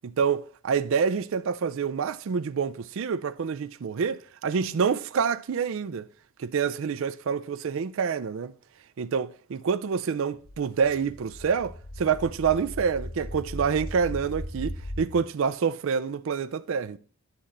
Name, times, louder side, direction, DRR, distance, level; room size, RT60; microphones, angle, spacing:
voice 1, 0.0-6.1 6.4-8.5 9.0-17.0, right 6 dB, 60° right, 0.4 m, -27 dB
sound 1, 10.3-15.1, left 1 dB, 80° left, 1.6 m, -38 dB
10.5 x 3.9 x 4.1 m
head